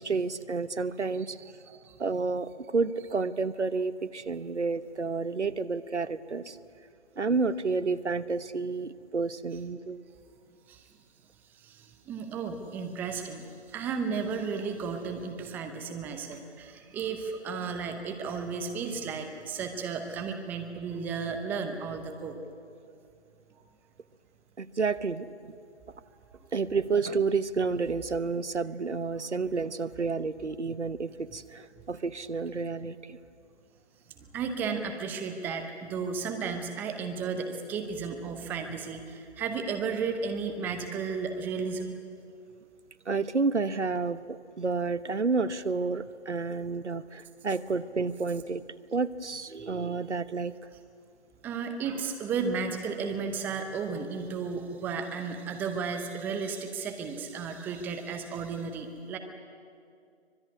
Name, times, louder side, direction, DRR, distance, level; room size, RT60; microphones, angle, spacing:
voice 1, 0.0-1.4 2.0-6.6 7.2-10.0 24.6-25.5 26.5-33.2 43.1-48.6 48.9-50.5, right 4 dB, 90° right, 15 dB, 1.1 m, -30 dB
voice 2, 1.7-2.0 10.7-10.9 11.5-22.4 26.4-26.5 34.2-42.0 51.4-59.2, right 5 dB, 5° right, 6 dB, 0.7 m, -34 dB
25.0 x 19.0 x 9.6 m, 2.4 s
figure-of-eight pair, 145°, 34 cm